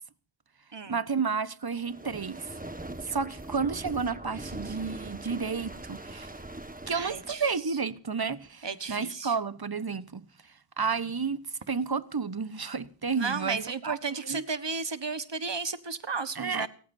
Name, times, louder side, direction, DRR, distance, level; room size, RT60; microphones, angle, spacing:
voice 1, 0.9-2.5 3.1-6.3 6.9-10.2 10.8-14.5 16.3-16.7, right 5 dB, 55° right, 1.1 m, -31 dB
sound 1, 1.8-7.6, right 2 dB, 20° right, 1.5 m, -41 dB
voice 2, 6.9-7.5 8.6-9.3 13.1-16.7, right 4 dB, 75° right, 1.4 m, -34 dB
29.5 x 14.5 x 2.7 m
wide cardioid pair, 45°, 44 cm